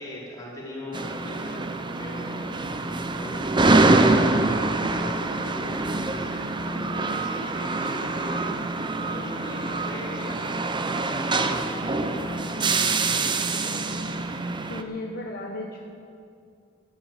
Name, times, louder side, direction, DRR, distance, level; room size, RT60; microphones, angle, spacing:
voice 1, 0.0-3.6 4.3-14.0, left 1 dB, 20° left, -7 dB, 4.6 m, -39 dB
sound 1, 0.9-14.8, right 2 dB, 25° right, 0.7 m, -25 dB
voice 2, 14.7-15.8, left 2 dB, 55° left, 0 dB, 1.1 m, -34 dB
12.0 x 10.5 x 8.8 m, 2.5 s
head